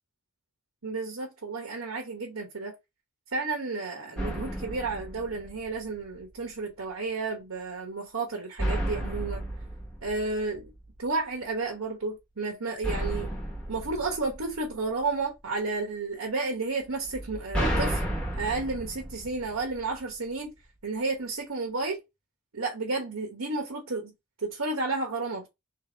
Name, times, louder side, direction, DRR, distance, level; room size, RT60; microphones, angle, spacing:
voice 1, 0.8-2.7 3.3-9.4 10.0-10.7 11.0-13.3 13.7-18.0 18.4-20.5 20.8-22.0 22.5-24.1 24.4-25.5, right 3 dB, 85° right, 1.2 m, -32 dB
sound 1, 4.2-6.0 8.6-11.0 12.8-15.1 17.1-20.1, right 1 dB, 5° left, 1.1 m, -33 dB
3.3 x 2.9 x 4.3 m
head